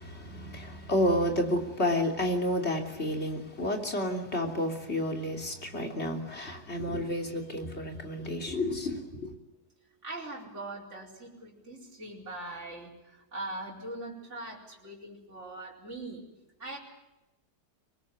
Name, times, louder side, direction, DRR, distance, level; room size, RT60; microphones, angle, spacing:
voice 1, 0.0-9.3, left 1 dB, 40° left, 3.4 m, -30 dB
voice 2, 10.0-16.2 16.6-16.8, right 2 dB, 45° right, 5.2 m, -41 dB
24.5 x 21.0 x 9.4 m
omnidirectional pair, 1.8 m